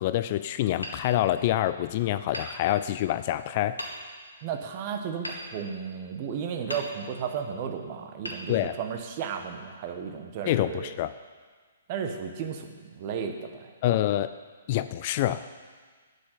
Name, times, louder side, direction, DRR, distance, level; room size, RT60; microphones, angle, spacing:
voice 1, 0.0-3.8 8.5-8.8 10.5-11.1 13.8-14.3 14.7-15.4, left 13 dB, 40° left, 13 dB, 0.4 m, -26 dB
Hammer, 0.8-1.8 2.3-3.2 3.8-4.4 5.2-6.2 6.7-7.4 8.2-9.2, equal, 85° left, 1.9 m, -40 dB
voice 2, 4.4-10.9 11.9-13.5, right 7 dB, 35° right, 5 dB, 1.3 m, -34 dB
8.4 x 8.3 x 9.0 m, 1.6 s
figure-of-eight pair, 125°, 0 cm